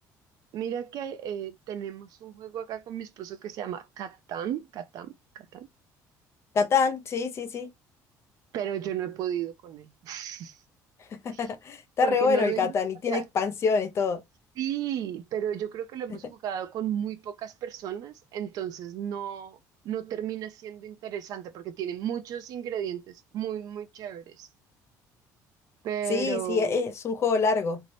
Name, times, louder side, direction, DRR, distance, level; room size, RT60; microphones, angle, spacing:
voice 1, 0.5-5.7 8.5-10.6 11.3-11.4 12.0-12.7 13.1-13.2 14.6-19.6 19.8-24.5 25.8-26.9, right 10 dB, 60° right, 0.4 m, -34 dB
voice 2, 6.5-7.7 11.1-14.2 26.1-27.8, left 5 dB, 40° left, 0.4 m, -26 dB
2.6 x 2.0 x 3.1 m
cardioid pair, 125°, 7 cm